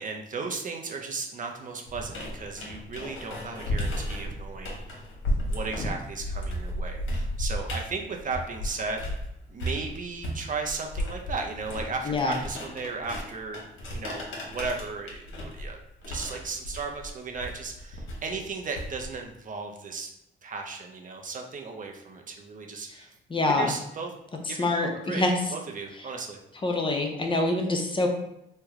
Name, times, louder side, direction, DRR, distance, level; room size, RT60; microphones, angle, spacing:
voice 1, 0.0-5.0 5.4-9.0 9.5-13.6 13.9-20.1 20.4-23.1 23.5-24.1 24.5-25.2 25.5-26.4, right 4 dB, 40° right, 2 dB, 0.5 m, -35 dB
sound 1, 1.9-9.3 9.6-19.2, equal, 75° left, 1.1 m, -34 dB
voice 2, 12.1-12.4 23.3-23.7 24.6-25.3 26.6-28.1, left 2 dB, 25° left, 2 dB, 0.6 m, -25 dB
3.2 x 2.1 x 3.6 m, 0.84 s
cardioid pair, 90°, 20 cm